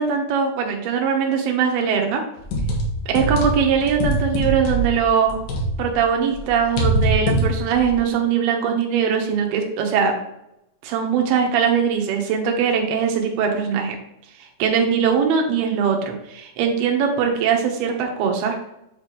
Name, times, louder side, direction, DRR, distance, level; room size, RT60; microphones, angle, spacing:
voice 1, 0.0-2.2 3.1-5.4 5.8-10.1 10.8-14.0 14.6-18.6, right 7 dB, 75° right, 2 dB, 2.9 m, -21 dB
sound 1, 2.4-6.0 6.3-8.0, right 1 dB, 75° left, 3.2 m, -22 dB
8.5 x 3.1 x 5.0 m, 0.85 s
omnidirectional pair, 4.7 m